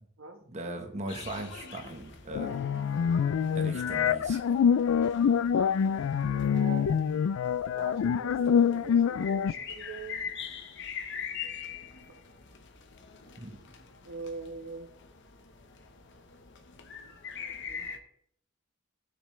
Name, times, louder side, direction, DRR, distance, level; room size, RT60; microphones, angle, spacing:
voice 1, 0.5-2.6 2.9-3.2 3.5-4.4 13.4-13.6, right 1 dB, 35° right, 4 dB, 1.2 m, -39 dB
sound 1, 1.1-18.0, left 6 dB, 65° left, 1.1 m, -44 dB
sound 2, 2.3-9.5, left 7 dB, 85° left, 0.3 m, -26 dB
voice 2, 6.3-7.1 7.6-10.2 14.0-14.9 17.7-17.8, right 4 dB, 80° right, 5 dB, 1.4 m, -43 dB
16.0 x 6.9 x 3.3 m, 0.69 s
head